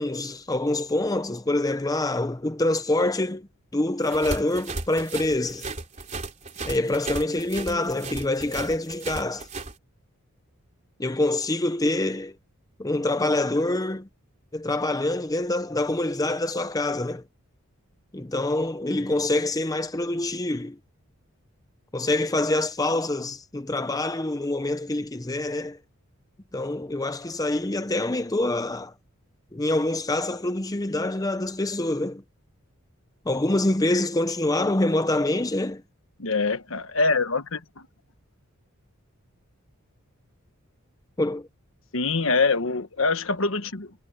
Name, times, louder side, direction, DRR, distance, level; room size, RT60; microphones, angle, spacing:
voice 1, 0.0-3.5 3.7-5.7 6.6-9.5 11.0-12.3 12.8-14.1 14.5-17.2 18.1-20.8 21.9-25.8 26.5-28.9 29.5-32.2 33.3-35.8 41.2-41.5, left 2 dB, 15° left, 0.7 m, -25 dB
sound 1, 4.0-9.7, right 3 dB, 35° right, 3.1 m, -35 dB
voice 2, 36.2-37.9 41.9-43.9, left 3 dB, 60° left, 1.3 m, -24 dB
head